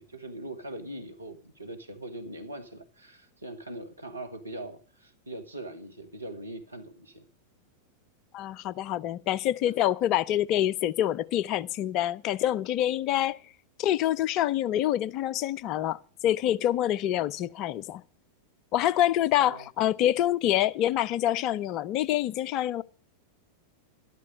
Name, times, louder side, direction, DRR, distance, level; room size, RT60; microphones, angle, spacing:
voice 1, 0.0-7.3 19.4-19.7, right 1 dB, 85° right, 1.8 m, -41 dB
voice 2, 8.3-13.4 13.8-18.0 18.7-22.8, left 12 dB, 40° left, 0.6 m, -26 dB
13.0 x 12.0 x 5.3 m
figure-of-eight pair, 90°, 0 cm